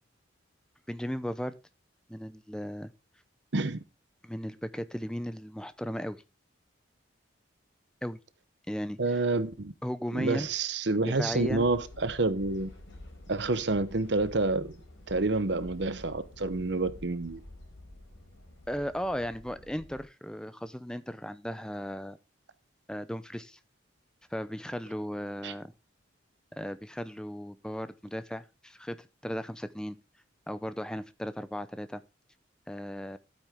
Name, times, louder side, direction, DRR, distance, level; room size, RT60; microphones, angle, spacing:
voice 1, 0.9-1.6 2.1-2.9 4.2-6.2 8.0-8.2 8.7-9.0 9.8-10.5 11.1-11.7 18.7-22.2 22.9-23.6 24.3-25.7 26.5-30.0 30.5-32.0 32.7-33.2, equal, 5° left, 0.6 m, -36 dB
voice 2, 9.0-9.7 10.1-12.7 13.3-14.7 15.1-17.4 25.4-25.5, right 3 dB, 60° right, 0.9 m, -28 dB
sound 1, 11.3-20.0, left 1 dB, 80° left, 4.3 m, -49 dB
12.0 x 9.0 x 3.6 m
head